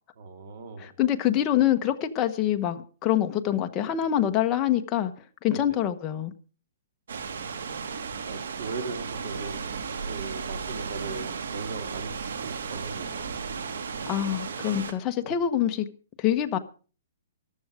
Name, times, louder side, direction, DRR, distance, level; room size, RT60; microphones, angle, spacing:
voice 1, 0.2-0.9 5.4-5.8 8.3-9.6 10.1-13.3 15.2-15.3, right 4 dB, 45° right, 7 dB, 3.3 m, -39 dB
voice 2, 0.8-5.1 5.4-6.3 14.1-15.9 16.2-16.6, left 11 dB, 20° left, 6 dB, 1.1 m, -25 dB
sound 1, 7.1-14.9, right 5 dB, 75° right, 2.6 m, -35 dB
14.0 x 12.5 x 5.0 m, 0.38 s
hypercardioid pair, 170°, 0 cm